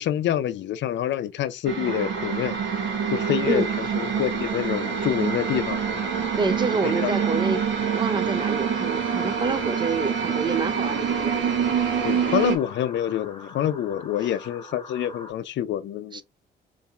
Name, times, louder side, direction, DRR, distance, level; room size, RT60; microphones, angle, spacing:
voice 1, 0.0-2.6 3.1-3.6 4.0-5.8 6.8-7.1 12.0-16.2, left 11 dB, 65° left, 0.5 m, -26 dB
sound 1, 1.7-12.6, right 7 dB, 70° right, 0.9 m, -26 dB
sound 2, 1.9-15.3, left 1 dB, 20° left, 1.1 m, -40 dB
voice 2, 6.4-11.4 14.2-14.3 16.1-16.2, right 4 dB, 25° right, 0.4 m, -28 dB
4.1 x 2.6 x 2.4 m
cardioid pair, 90°, 20 cm